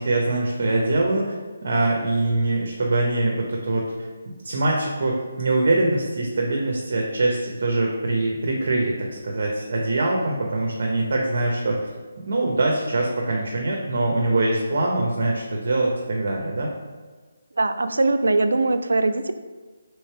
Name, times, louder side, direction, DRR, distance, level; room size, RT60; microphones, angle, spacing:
voice 1, 0.0-1.4 1.6-3.9 4.4-11.9 12.2-16.7, right 2 dB, 50° right, -1 dB, 0.7 m, -23 dB
voice 2, 17.6-19.3, right 2 dB, 85° right, 9 dB, 0.3 m, -21 dB
3.2 x 3.1 x 4.4 m, 1.4 s
hypercardioid pair, 170°, 0 cm